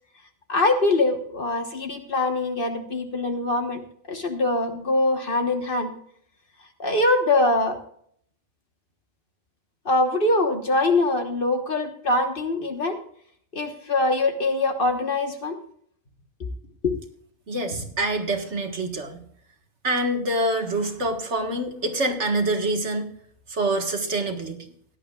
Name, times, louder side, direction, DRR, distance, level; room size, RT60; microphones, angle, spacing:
voice 1, 0.5-3.8 4.1-5.9 6.8-7.8 9.8-13.0 13.5-15.6 16.8-16.9, left 2 dB, 40° left, 5 dB, 1.5 m, -23 dB
voice 2, 17.5-19.2 19.8-23.1 23.5-24.6, right 2 dB, 55° right, 5 dB, 1.9 m, -26 dB
17.0 x 11.5 x 2.4 m, 0.64 s
omnidirectional pair, 1.4 m